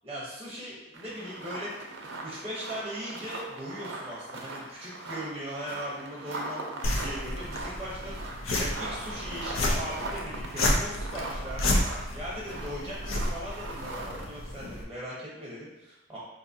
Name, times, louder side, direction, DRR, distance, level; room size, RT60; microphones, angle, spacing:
voice 1, 0.0-1.7 2.2-16.2, equal, 10° right, -6 dB, 0.7 m, -39 dB
sound 1, 0.9-14.3, right 2 dB, 70° right, 0.5 m, -40 dB
sound 2, 6.8-14.8, left 1 dB, 90° left, 0.6 m, -31 dB
4.6 x 2.7 x 2.7 m, 1.0 s
head